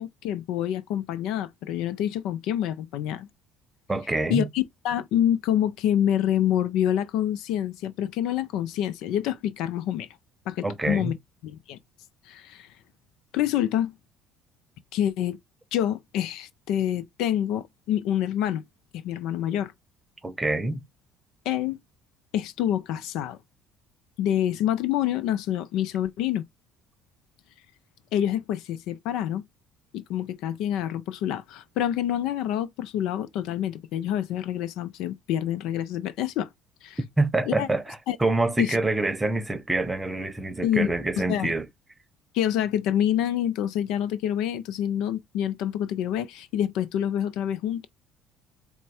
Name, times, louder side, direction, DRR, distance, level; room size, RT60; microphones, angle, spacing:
voice 1, 0.0-3.3 4.3-10.1 10.5-11.2 11.4-11.8 12.3-12.7 13.3-13.9 14.9-15.4 15.7-18.6 18.9-19.7 21.5-21.8 22.3-23.4 24.2-26.4 28.1-29.4 29.9-36.5 36.8-37.0 37.5-37.7 38.1-38.2 38.6-38.8 40.6-40.9 41.3-41.5 42.3-47.9, left 11 dB, 70° left, 0.5 m, -27 dB
voice 2, 3.9-4.5 10.6-11.1 20.2-20.8 37.0-41.6, right 2 dB, 15° right, 0.8 m, -26 dB
4.5 x 2.1 x 4.2 m
hypercardioid pair, 65°, 0 cm